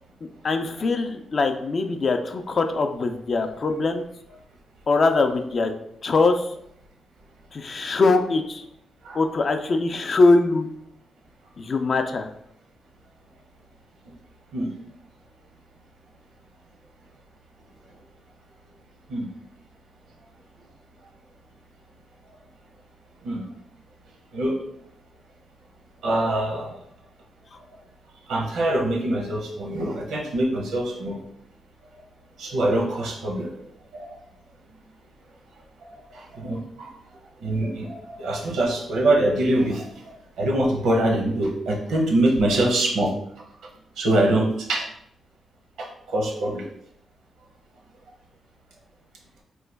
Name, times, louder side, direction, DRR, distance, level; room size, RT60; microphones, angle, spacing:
voice 1, 0.4-4.0 4.9-5.7 6.0-6.5 7.5-8.6 9.1-10.7 11.6-12.3, left 3 dB, 45° left, 6 dB, 0.3 m, -22 dB
voice 2, 26.0-26.8 28.3-31.2 32.4-34.2 35.9-36.9 37.4-43.1 44.0-44.9 45.8-46.6, right 1 dB, 85° right, 0 dB, 0.8 m, -24 dB
3.0 x 2.2 x 3.3 m, 0.71 s
cardioid pair, 105°, 0 cm